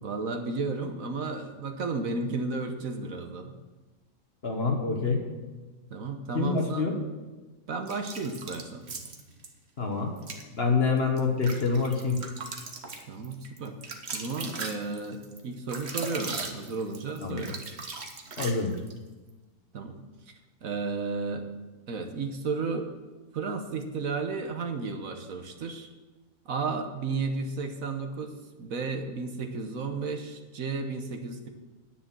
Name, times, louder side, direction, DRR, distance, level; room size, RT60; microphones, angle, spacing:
voice 1, 0.0-3.6 5.9-6.9 7.7-8.8 13.1-17.6 19.7-20.0 20.6-21.5 21.9-22.9 23.3-25.9 26.4-31.5, right 4 dB, 60° right, 6 dB, 1.4 m, -33 dB
voice 2, 4.4-5.2 6.3-7.0 9.8-10.1 10.5-12.2 17.2-17.5 18.4-18.7, left 4 dB, 40° left, 2 dB, 1.6 m, -26 dB
sound 1, 7.9-9.5 10.2-10.4 11.0-19.0, right 4 dB, 45° right, 1.3 m, -38 dB
10.0 x 9.9 x 6.0 m, 1.2 s
omnidirectional pair, 1.6 m